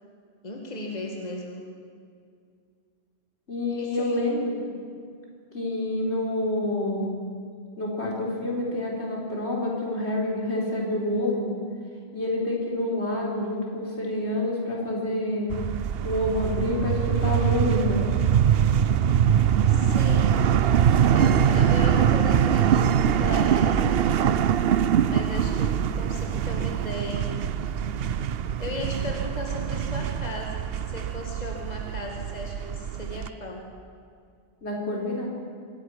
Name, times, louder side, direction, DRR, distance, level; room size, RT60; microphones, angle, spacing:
voice 1, 0.4-1.7 3.7-4.2 19.7-20.5 21.1-24.0 25.0-27.4 28.6-33.7, left 1 dB, 40° left, 1 dB, 2.1 m, -36 dB
voice 2, 3.5-4.6 5.5-7.1 7.8-11.6 12.1-15.5 16.0-18.1 34.6-35.3, left 1 dB, 80° left, -2 dB, 4.7 m, -27 dB
sound 1, 15.5-33.3, right 9 dB, 65° right, 0.9 m, -23 dB
24.5 x 11.0 x 10.0 m, 2.2 s
omnidirectional pair, 1.1 m